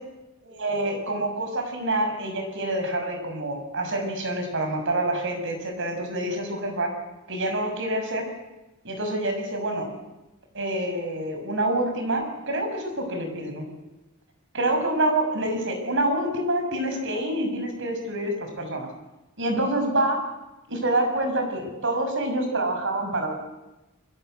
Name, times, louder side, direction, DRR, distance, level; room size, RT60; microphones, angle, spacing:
voice 1, 0.4-6.9 7.3-8.3 8.8-9.9 10.5-13.6 14.5-18.9 19.4-20.2 20.7-23.3, right 1 dB, 60° right, 5 dB, 6.6 m, -27 dB
29.5 x 23.0 x 8.1 m, 1.0 s
head